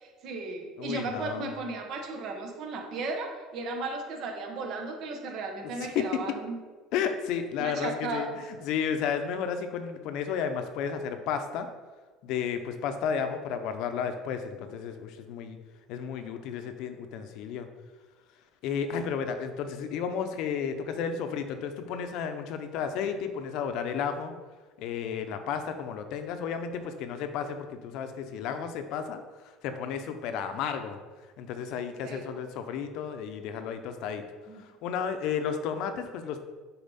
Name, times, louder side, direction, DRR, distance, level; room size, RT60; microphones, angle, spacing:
voice 1, 0.0-6.6 7.6-8.3 32.0-32.2 34.5-34.6, right 3 dB, 60° right, 3 dB, 1.2 m, -35 dB
voice 2, 0.8-1.5 5.6-6.2 6.9-11.7 12.2-15.6 15.9-17.7 18.6-24.3 24.8-29.2 29.6-31.0 31.4-34.2 34.5-36.4, left 7 dB, 70° left, 8 dB, 0.7 m, -32 dB
6.9 x 4.2 x 4.2 m, 1.4 s
supercardioid pair, 115°, 0 cm